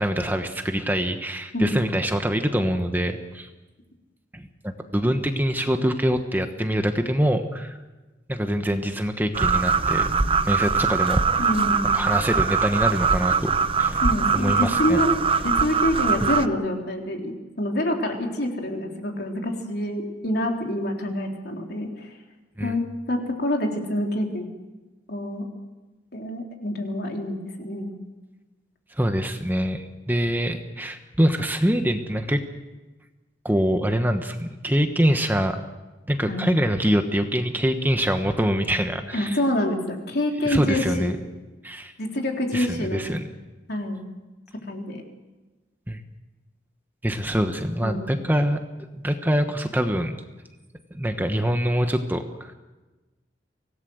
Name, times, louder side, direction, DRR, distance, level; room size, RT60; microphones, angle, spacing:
voice 1, 0.0-3.5 4.3-7.8 8.3-10.1 10.4-11.5 11.9-13.5 13.8-14.0 14.3-15.0 22.6-22.7 29.0-32.4 33.4-35.6 36.1-39.4 40.4-41.2 41.6-41.9 42.5-43.2 45.9-46.0 47.0-48.6 49.0-50.1 50.9-52.5, equal, 10° right, 6 dB, 1.2 m, -24 dB
sound 1, 9.3-16.5, right 5 dB, 30° right, 0.9 m, -22 dB
voice 2, 11.4-12.0 14.0-15.1 15.4-22.1 22.6-24.5 25.1-25.4 26.1-27.9 36.3-36.6 39.1-41.2 42.0-43.0 43.7-44.0 44.7-45.0 47.8-48.1, left 1 dB, 60° left, 2 dB, 3.7 m, -27 dB
25.0 x 18.0 x 7.9 m, 1.2 s
head